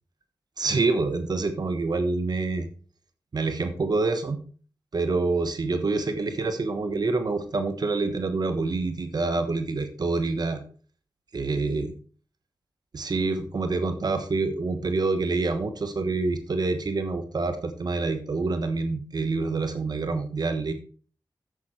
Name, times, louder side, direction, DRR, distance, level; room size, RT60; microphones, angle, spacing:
voice 1, 0.6-2.7 3.3-4.4 4.9-10.6 11.3-11.9 12.9-20.7, right 3 dB, 55° right, 8 dB, 1.2 m, -27 dB
9.7 x 7.5 x 4.3 m, 0.41 s
cardioid pair, 60°, 8 cm